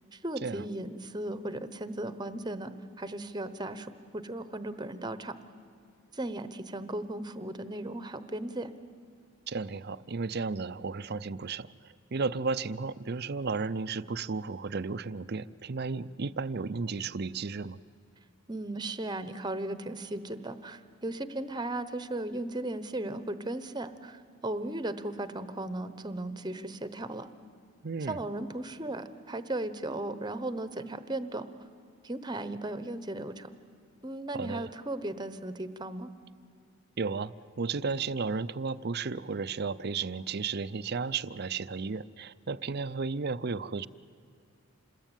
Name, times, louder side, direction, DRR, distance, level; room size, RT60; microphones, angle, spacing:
voice 1, 0.1-5.3 6.1-8.7 18.5-27.3 28.1-31.5 32.0-33.5 34.0-36.1, right 1 dB, 20° right, 12 dB, 1.0 m, -36 dB
voice 2, 9.5-11.7 12.1-17.8 27.8-28.2 34.3-34.7 37.0-43.9, right 4 dB, 50° right, 15 dB, 0.6 m, -33 dB
27.0 x 21.0 x 9.1 m, 2.3 s
head